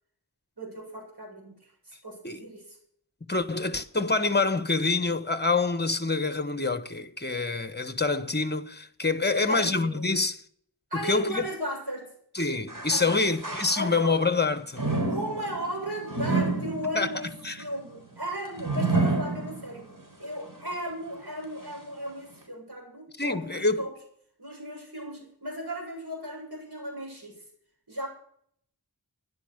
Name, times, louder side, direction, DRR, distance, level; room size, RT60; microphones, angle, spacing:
voice 1, 0.6-2.8 9.3-10.3 10.9-12.1 12.9-14.3 15.1-17.3 17.6-19.9 20.2-24.0 24.4-27.4 27.9-28.1, equal, 70° right, 7.4 m, -36 dB
voice 2, 3.3-10.4 11.0-11.5 12.3-14.8 16.9-17.1 17.4-17.6 23.2-23.8, left 3 dB, 25° left, 1.2 m, -26 dB
sound 1, 12.7-14.3 14.7-20.0 20.5-20.6 21.4-21.5, right 3 dB, 55° right, 4.1 m, -30 dB
12.5 x 10.5 x 6.6 m
wide cardioid pair, 45°, 40 cm